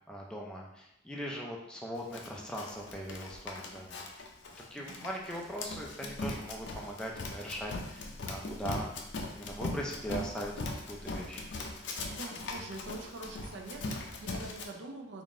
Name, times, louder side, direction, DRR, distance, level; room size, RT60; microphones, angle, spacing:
voice 1, 0.1-4.0 4.7-8.9 9.3-10.5 10.9-11.5, equal, 5° left, -2 dB, 0.4 m, -40 dB
Run, 2.1-14.6, left 2 dB, 60° left, 0.5 m, -40 dB
voice 2, 4.8-5.4 12.1-15.2, right 2 dB, 60° right, 3 dB, 0.5 m, -45 dB
3.7 x 2.5 x 3.7 m, 0.84 s
head